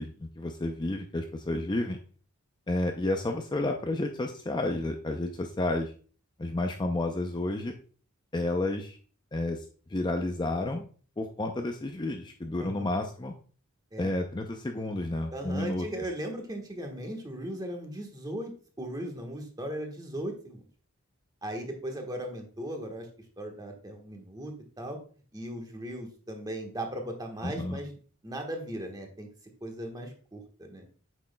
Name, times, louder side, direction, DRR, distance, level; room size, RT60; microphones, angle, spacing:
voice 1, 0.0-2.0 2.7-5.9 6.4-7.8 8.3-9.0 9.3-9.6 9.9-10.9 11.2-13.3 14.0-15.9 27.4-27.8, left 2 dB, 20° left, 4 dB, 0.5 m, -31 dB
voice 2, 12.6-12.9 13.9-14.1 15.3-18.5 18.8-20.6 21.4-23.1 23.4-25.0 25.3-27.9 28.2-29.3 29.6-30.8, right 1 dB, 20° right, 3 dB, 1.3 m, -37 dB
8.5 x 6.2 x 2.2 m, 0.41 s
head